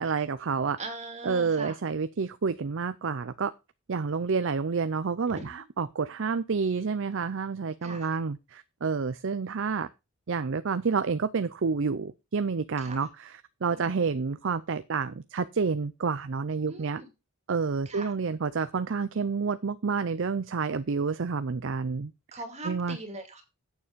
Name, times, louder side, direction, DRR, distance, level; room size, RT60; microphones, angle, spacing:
voice 1, 0.0-0.8 1.2-3.5 3.9-9.9 10.3-13.3 13.6-17.0 17.5-22.1 22.6-23.0, right 5 dB, 55° right, 13 dB, 0.5 m, -29 dB
voice 2, 0.8-1.8 5.3-5.6 7.8-8.1 12.8-13.1 13.7-14.0 16.6-17.1 17.9-18.1 22.3-23.4, right 2 dB, 30° right, 5 dB, 2.4 m, -40 dB
8.8 x 7.1 x 5.1 m, 0.26 s
head